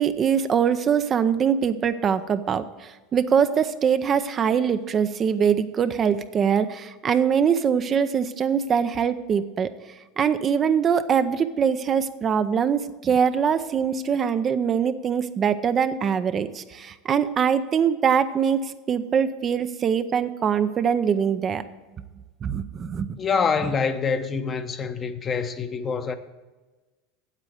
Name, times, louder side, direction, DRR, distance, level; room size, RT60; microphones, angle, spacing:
voice 1, 0.0-9.7 10.2-18.6 18.9-21.6 22.4-23.2, right 7 dB, 35° right, 0.6 m, -23 dB
voice 2, 23.2-26.1, left 5 dB, 30° left, 0.9 m, -25 dB
8.3 x 8.2 x 7.8 m
hypercardioid pair, 95°, 0 cm